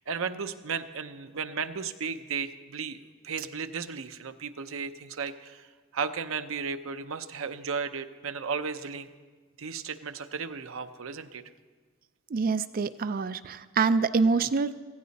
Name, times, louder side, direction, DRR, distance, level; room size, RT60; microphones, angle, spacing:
voice 1, 0.0-5.7 5.9-9.1 9.6-11.4, right 5 dB, 75° right, 10 dB, 0.7 m, -34 dB
voice 2, 12.3-14.8, right 4 dB, 45° right, 13 dB, 0.4 m, -26 dB
16.0 x 15.5 x 4.1 m, 1.4 s
head